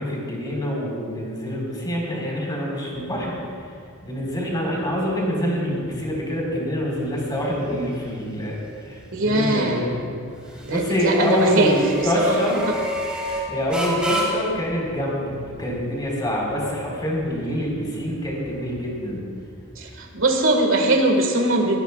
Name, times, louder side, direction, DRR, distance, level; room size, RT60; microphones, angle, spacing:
voice 1, 0.0-3.4 4.0-9.9 10.7-12.6 13.5-19.2, equal, 20° left, -3 dB, 4.2 m, -25 dB
sound 1, 2.9-20.1, equal, 5° right, 3.6 m, -34 dB
voice 2, 9.1-10.1 10.6-12.3 19.8-21.8, right 1 dB, 65° right, 2 dB, 1.8 m, -21 dB
22.0 x 18.0 x 2.4 m, 2.3 s
head